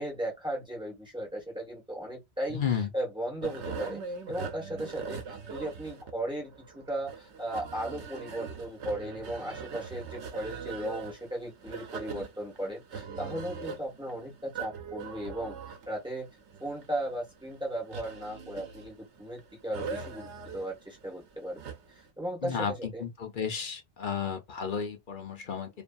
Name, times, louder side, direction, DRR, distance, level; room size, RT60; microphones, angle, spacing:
voice 1, 0.0-4.0 4.3-16.3 16.6-21.6 21.9-23.1, right 1 dB, 5° right, 1.5 m, -36 dB
voice 2, 2.5-2.9 22.4-25.7, left 7 dB, 55° left, 0.7 m, -33 dB
sound 1, 3.4-22.1, right 5 dB, 75° right, 1.0 m, -41 dB
2.6 x 2.6 x 2.3 m
omnidirectional pair, 1.2 m